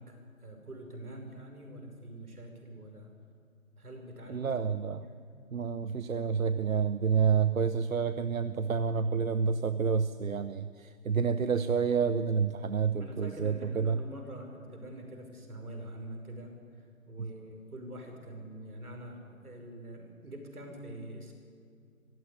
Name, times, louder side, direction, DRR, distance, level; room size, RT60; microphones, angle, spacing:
voice 1, 0.0-3.1 3.8-4.5 5.0-5.2 13.0-21.3, right 1 dB, 85° right, 3 dB, 5.7 m, -45 dB
voice 2, 4.3-5.1 5.5-14.0 17.2-17.3, right 6 dB, 65° right, 12 dB, 0.9 m, -29 dB
19.0 x 15.5 x 9.8 m, 2.2 s
figure-of-eight pair, 170°, 43 cm